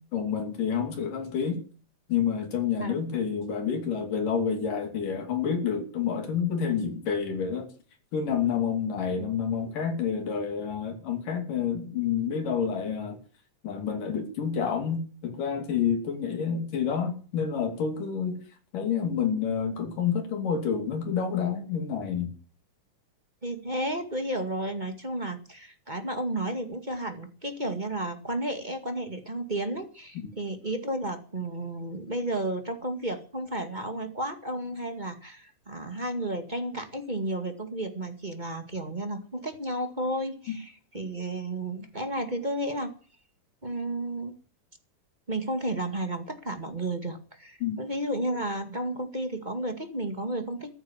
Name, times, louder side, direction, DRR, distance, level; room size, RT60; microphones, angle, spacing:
voice 1, 0.1-1.6 2.1-7.7 8.1-13.2 13.6-18.4 18.7-22.3 40.5-40.6 47.6-47.8, left 7 dB, 80° left, 4.4 m, -28 dB
voice 2, 23.4-42.9 43.6-44.3 45.3-50.7, right 1 dB, 20° right, 1.6 m, -32 dB
14.0 x 14.0 x 7.4 m
omnidirectional pair, 3.8 m